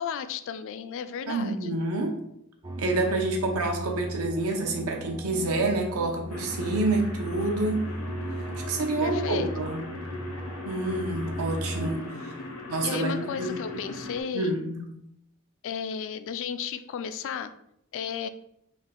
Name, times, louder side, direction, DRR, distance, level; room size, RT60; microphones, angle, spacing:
voice 1, 0.0-1.8 9.0-9.5 12.5-14.6 15.6-17.5 17.9-18.3, left 7 dB, 65° left, 12 dB, 0.3 m, -34 dB
voice 2, 1.3-2.2 2.8-7.8 8.7-9.8 10.6-12.3 12.7-13.8 14.3-14.8, right 2 dB, 90° right, 2 dB, 0.8 m, -28 dB
sound 1, 2.6-12.0, right 1 dB, 20° right, 0.3 m, -36 dB
sound 2, 6.3-14.2, left 2 dB, 80° left, 0.8 m, -40 dB
3.6 x 2.7 x 3.7 m, 0.76 s
head